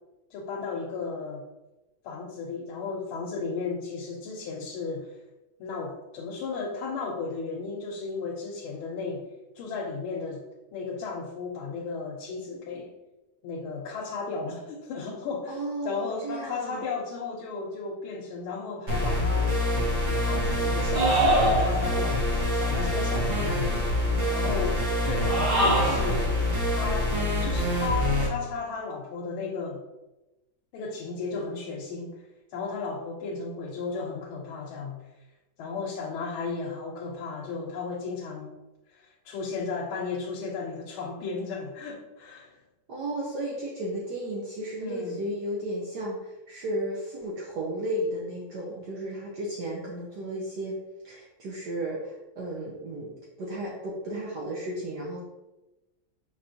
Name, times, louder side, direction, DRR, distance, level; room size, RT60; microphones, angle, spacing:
voice 1, 0.3-1.4 2.0-5.1 5.6-9.2 9.5-10.4 10.7-12.9 13.4-19.6 20.2-23.7 24.3-26.3 26.7-27.1 27.4-29.8 30.7-32.1 32.5-35.0 35.6-38.5 38.9-42.6 44.8-45.2, left 4 dB, 90° left, -1 dB, 1.5 m, -34 dB
voice 2, 15.5-16.8 42.9-50.7 51.0-55.3, right 1 dB, 65° right, -4 dB, 1.1 m, -34 dB
sound 1, 18.9-28.3, left 1 dB, 35° right, 0.8 m, -26 dB
sound 2, 20.9-22.0 25.1-26.1, right 1 dB, 90° right, 2.4 m, -24 dB
5.1 x 3.5 x 2.6 m, 1.0 s
omnidirectional pair, 2.3 m